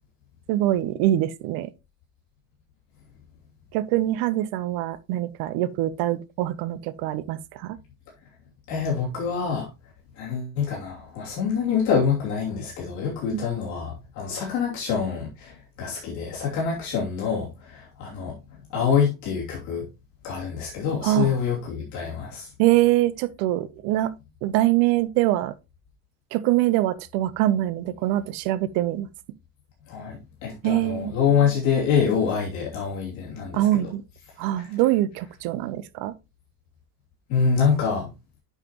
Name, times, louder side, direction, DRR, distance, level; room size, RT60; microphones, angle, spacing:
voice 1, 0.5-1.7 3.7-7.8 13.3-13.4 21.0-21.3 22.6-24.1 24.4-25.5 26.3-29.1 30.6-31.2 33.5-34.0 34.4-36.1, right 14 dB, 70° right, 0.8 m, -24 dB
voice 2, 8.7-9.7 10.2-18.4 18.7-19.9 20.2-22.5 29.9-33.9 34.6-34.7 37.3-38.1, left 6 dB, 55° left, 2.9 m, -26 dB
9.1 x 5.7 x 3.0 m
cardioid pair, 165°, 36 cm